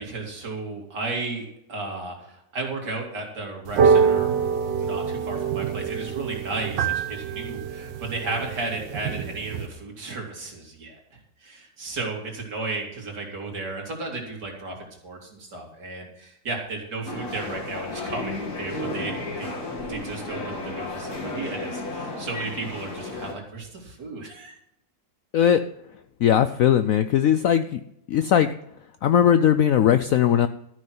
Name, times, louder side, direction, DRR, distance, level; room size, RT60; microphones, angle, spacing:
voice 1, 0.0-4.3 4.8-19.5 19.9-24.5, right 3 dB, 65° right, 1 dB, 3.4 m, -34 dB
sound 1, 3.7-9.7, right 6 dB, 80° right, 1.7 m, -25 dB
sound 2, 17.1-23.3, left 2 dB, 55° left, 2.6 m, -33 dB
voice 2, 26.2-27.8 28.1-28.5 29.0-30.5, left 9 dB, 70° left, 11 dB, 0.8 m, -19 dB
13.5 x 6.3 x 7.7 m, 0.79 s
omnidirectional pair, 1.9 m